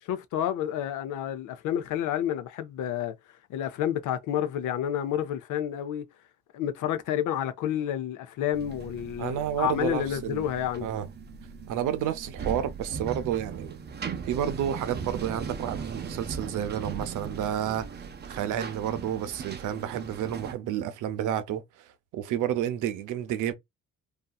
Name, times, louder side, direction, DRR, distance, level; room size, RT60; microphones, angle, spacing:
voice 1, 0.1-3.1 3.5-6.0 6.5-10.9, left 10 dB, 80° left, 0.6 m, -29 dB
sound 1, 8.5-20.5, right 5 dB, 35° right, 0.5 m, -38 dB
voice 2, 9.2-10.5 10.8-11.1 11.7-13.8 14.3-17.9 18.3-23.5, right 10 dB, 85° right, 0.6 m, -30 dB
2.7 x 2.3 x 2.2 m
cardioid pair, 90°, 30 cm